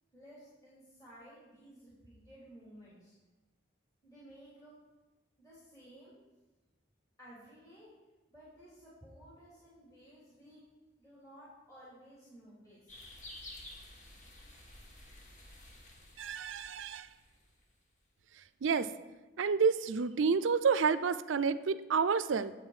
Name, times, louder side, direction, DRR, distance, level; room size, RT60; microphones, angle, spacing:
voice 1, 0.1-3.1 4.0-4.7 5.4-6.2 7.2-7.9 8.3-10.6 11.0-13.5, equal, 20° left, -9 dB, 2.8 m, -56 dB
sound 1, 12.9-17.9, left 1 dB, 40° left, 1.5 m, -52 dB
voice 2, 16.2-17.1 18.6-18.9 19.4-22.5, right 5 dB, 90° right, 14 dB, 0.5 m, -29 dB
9.5 x 8.0 x 4.8 m, 1.1 s
head